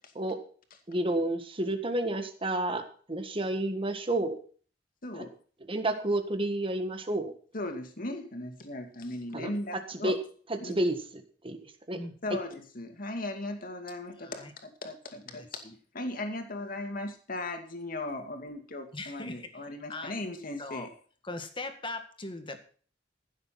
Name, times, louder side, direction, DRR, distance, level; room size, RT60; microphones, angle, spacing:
voice 1, 0.9-2.8 3.1-4.4 5.1-5.2 5.7-7.3 9.3-10.2 10.5-11.0 11.4-11.6 11.9-12.0 12.3-12.4, right 1 dB, 30° right, 7 dB, 1.7 m, -30 dB
voice 2, 5.0-5.3 7.5-10.1 10.6-10.7 12.2-20.9, left 2 dB, 50° left, 5 dB, 2.3 m, -37 dB
voice 3, 14.2-14.5 15.3-15.7 18.9-19.5 19.9-20.1 20.6-20.9 21.2-22.6, left 2 dB, 30° left, 7 dB, 1.8 m, -40 dB
15.0 x 7.4 x 5.8 m, 0.43 s
head